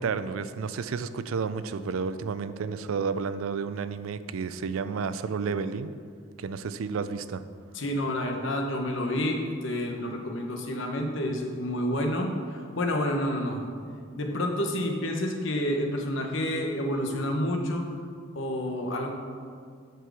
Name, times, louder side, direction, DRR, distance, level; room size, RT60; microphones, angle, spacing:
voice 1, 0.0-5.9 6.4-7.4, right 5 dB, 85° right, 13 dB, 0.4 m, -31 dB
voice 2, 7.7-13.6 14.2-17.8 18.3-19.1, left 1 dB, 65° left, 3 dB, 1.0 m, -29 dB
8.0 x 4.6 x 6.2 m, 2.1 s
head